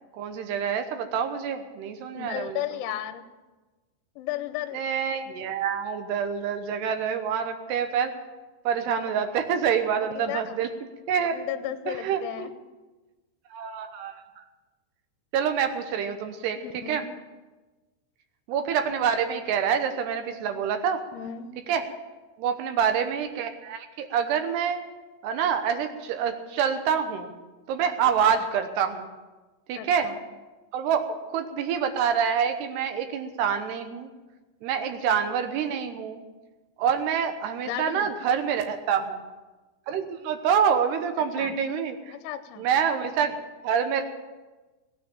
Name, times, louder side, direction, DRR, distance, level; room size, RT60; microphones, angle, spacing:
voice 1, 0.1-2.6 4.7-8.1 8.6-10.7 11.1-11.3 11.9-12.5 13.5-14.2 15.3-16.6 16.9-17.1 18.5-21.0 21.7-21.8 22.4-24.8 25.2-27.4 27.7-29.1 29.7-30.1 30.7-34.1 34.6-36.2 36.8-39.2 39.9-42.2 42.6-43.4 43.6-44.0, right 7 dB, 75° right, 7 dB, 2.7 m, -26 dB
voice 2, 2.1-3.2 4.2-4.8 9.9-10.6 11.2-12.5 16.6-17.1 21.1-21.5 29.8-30.2 37.6-38.1 41.2-41.6 42.1-42.7, left 11 dB, 80° left, 9 dB, 3.0 m, -34 dB
16.5 x 9.6 x 7.1 m, 1.2 s
omnidirectional pair, 5.6 m